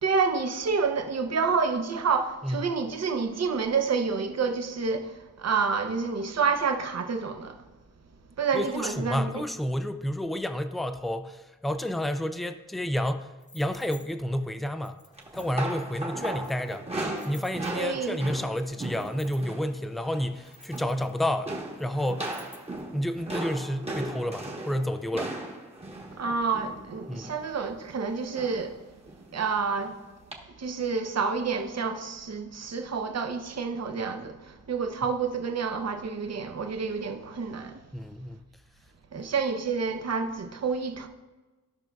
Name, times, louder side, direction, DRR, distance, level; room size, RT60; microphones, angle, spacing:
voice 1, 0.0-7.6 8.4-9.4 17.7-18.2 26.1-28.8 29.3-30.0 30.6-37.9 39.1-41.1, right 5 dB, 50° right, 0.7 m, -29 dB
voice 2, 8.5-13.3 13.5-15.0 15.3-16.9 17.2-22.3 22.9-25.3 27.1-27.4 37.9-38.4, equal, ahead, 0.3 m, -30 dB
sound 1, 13.4-14.1 14.8-15.7 16.4-18.0 18.8-19.6 20.3-21.4 22.0-22.8, left 1 dB, 25° left, 0.8 m, -53 dB
sound 2, 15.2-19.7 20.0-20.3 20.6-21.1 21.5-27.5 28.3-28.7 29.1-29.2 30.3-30.4, right 2 dB, 20° right, 1.1 m, -37 dB
14.5 x 5.9 x 2.3 m
wide cardioid pair, 145°, 33 cm